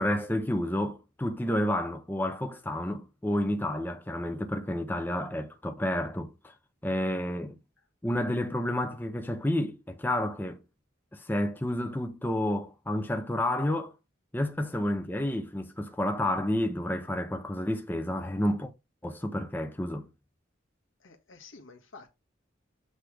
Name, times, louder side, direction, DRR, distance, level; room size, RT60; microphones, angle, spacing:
voice 1, 0.0-6.5 6.8-7.6 8.0-10.6 11.1-14.0 14.3-18.7 19.0-20.1, left 1 dB, 10° left, 0.6 m, -30 dB
voice 2, 21.0-22.1, left 4 dB, 85° left, 1.7 m, -50 dB
8.1 x 3.4 x 4.8 m
head